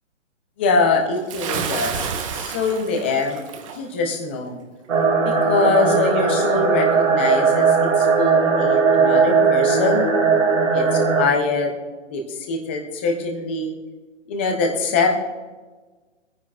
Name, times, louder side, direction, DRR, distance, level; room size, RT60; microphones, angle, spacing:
voice 1, 0.6-3.4 3.7-4.6 5.2-10.1 10.7-11.7 12.1-13.7 14.3-15.1, left 4 dB, 10° left, 2 dB, 0.4 m, -23 dB
Bathtub (filling or washing) / Splash splatter, 1.3-3.8, right 7 dB, 25° right, 0.8 m, -29 dB
sound 1, 4.9-11.2, right 5 dB, 75° right, 2.4 m, -18 dB
21.0 x 9.7 x 2.3 m, 1.3 s
hypercardioid pair, 145°, 38 cm